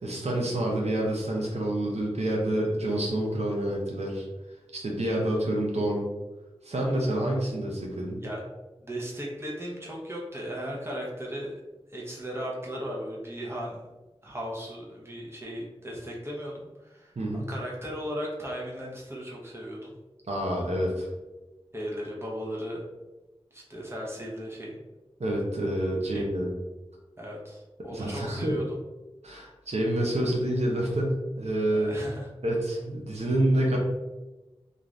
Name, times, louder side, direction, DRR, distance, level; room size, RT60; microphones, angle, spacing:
voice 1, 0.0-4.2 4.7-6.1 6.6-8.2 17.2-17.5 20.3-21.1 25.2-26.5 27.9-28.5 29.2-32.0 32.4-33.8, right 1 dB, 80° right, -2 dB, 0.6 m, -28 dB
voice 2, 8.8-11.5 11.9-13.8 14.2-19.9 21.7-22.8 23.5-24.8 26.0-26.2 27.2-28.8 31.8-32.3, equal, 25° right, -4 dB, 0.8 m, -36 dB
2.5 x 2.5 x 3.2 m, 1.1 s
wide cardioid pair, 65°, 11 cm